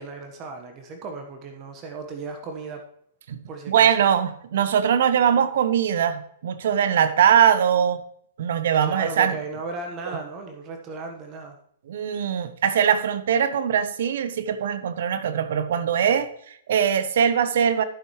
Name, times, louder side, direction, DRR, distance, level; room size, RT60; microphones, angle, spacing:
voice 1, 0.0-2.8 3.5-3.9 8.8-11.6, right 3 dB, 35° right, 4 dB, 1.4 m, -35 dB
voice 2, 3.7-8.0 8.4-9.3 11.9-17.8, right 8 dB, 70° right, 13 dB, 0.9 m, -21 dB
12.5 x 7.3 x 3.2 m, 0.66 s
hypercardioid pair, 125°, 0 cm